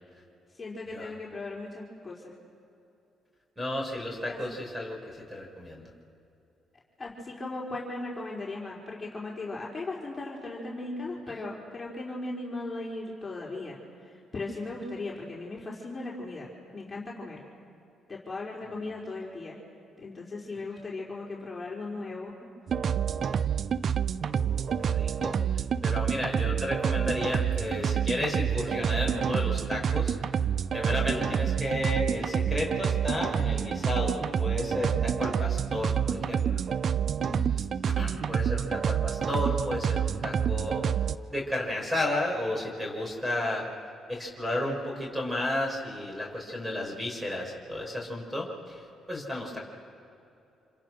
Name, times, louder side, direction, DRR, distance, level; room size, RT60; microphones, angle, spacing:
voice 1, 0.6-2.3 4.3-4.4 7.0-13.8 14.0-17.4 18.1-19.6 20.0-22.3 30.9-31.3 37.0-37.5, left 2 dB, 25° left, -4 dB, 4.5 m, -37 dB
voice 2, 3.6-5.9 24.3-30.1 30.7-36.6 37.9-40.8 41.3-43.7 44.1-49.6, left 1 dB, 10° right, 0 dB, 5.8 m, -33 dB
sound 1, 22.7-41.2, right 8 dB, 55° right, 0.6 m, -28 dB
29.5 x 27.5 x 6.3 m, 2.8 s
cardioid pair, 90°, 0 cm